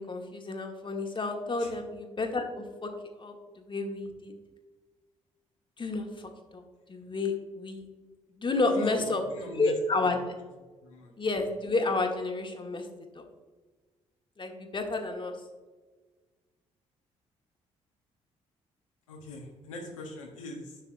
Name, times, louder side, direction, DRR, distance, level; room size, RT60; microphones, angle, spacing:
voice 1, 0.0-2.9 3.2-4.3 5.8-6.6 6.9-7.9 8.3-10.2 11.2-12.9 13.1-13.2 14.4-15.3, left 3 dB, 30° left, 3 dB, 1.4 m, -31 dB
voice 2, 8.7-9.7 10.0-10.1 10.8-11.1 19.1-20.8, left 2 dB, 85° left, 0 dB, 1.1 m, -42 dB
10.0 x 5.7 x 2.5 m, 1.3 s
figure-of-eight pair, 45°, 16 cm